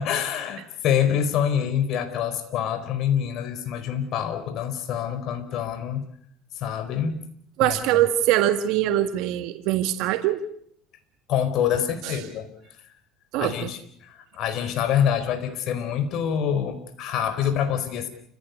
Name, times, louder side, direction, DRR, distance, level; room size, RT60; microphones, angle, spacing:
voice 1, 0.0-6.0 6.5-7.2 7.6-7.8 11.3-12.5 13.4-18.1, left 8 dB, 60° left, 10 dB, 4.4 m, -26 dB
voice 2, 7.6-10.4 12.0-12.2 13.3-13.7, right 13 dB, 70° right, 8 dB, 1.7 m, -23 dB
29.5 x 16.0 x 8.3 m, 0.68 s
supercardioid pair, 105°, 0 cm